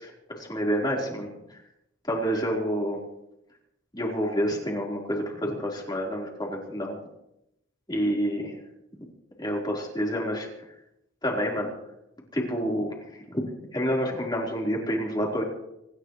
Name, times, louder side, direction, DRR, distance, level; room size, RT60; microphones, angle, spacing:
voice 1, 0.3-1.6 2.0-3.0 3.9-7.0 7.9-8.5 9.4-10.5 11.2-11.7 12.3-15.4, equal, 20° left, -2 dB, 4.3 m, -28 dB
26.0 x 14.5 x 3.3 m, 0.85 s
head